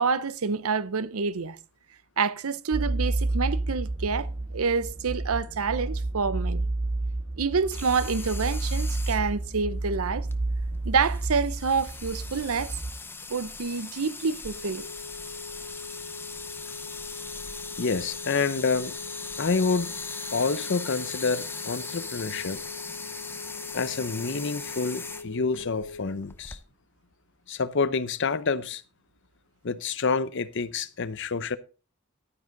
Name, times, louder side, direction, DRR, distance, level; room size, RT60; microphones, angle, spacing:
voice 1, 0.0-1.6 2.2-4.3 4.5-6.7 7.4-10.3 10.8-12.7 13.3-14.8, right 5 dB, 75° right, 0.7 m, -27 dB
sound 1, 2.7-12.9, right 2 dB, 35° right, 0.7 m, -30 dB
sound 2, 7.7-26.6, left 4 dB, 10° left, 0.6 m, -40 dB
sound 3, 14.5-26.1, left 3 dB, 75° left, 1.5 m, -42 dB
voice 2, 17.8-18.9 19.4-20.0 20.3-22.6 23.7-26.6 27.5-28.8 29.6-31.6, left 4 dB, 55° left, 0.7 m, -28 dB
11.5 x 9.8 x 3.9 m
head